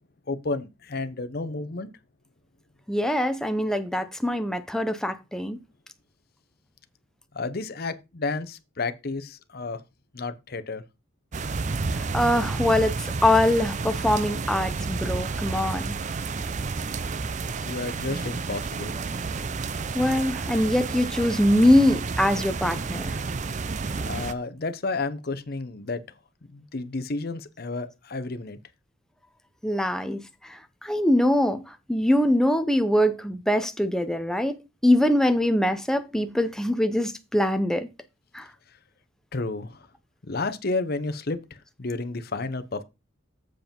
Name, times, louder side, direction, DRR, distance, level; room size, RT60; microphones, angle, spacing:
voice 1, 0.3-1.9 7.3-9.8 10.1-10.8 17.4-18.9 24.1-26.0 26.5-28.6 39.3-39.8 40.2-41.4 41.8-42.8, left 3 dB, 50° left, 0.8 m, -31 dB
voice 2, 2.9-5.6 11.9-15.9 19.9-23.2 29.6-30.2 30.5-34.6 34.8-37.9 38.3-38.5, left 1 dB, 5° left, 0.7 m, -23 dB
sound 1, 11.3-24.3, right 4 dB, 35° right, 0.4 m, -30 dB
7.6 x 4.7 x 5.2 m
head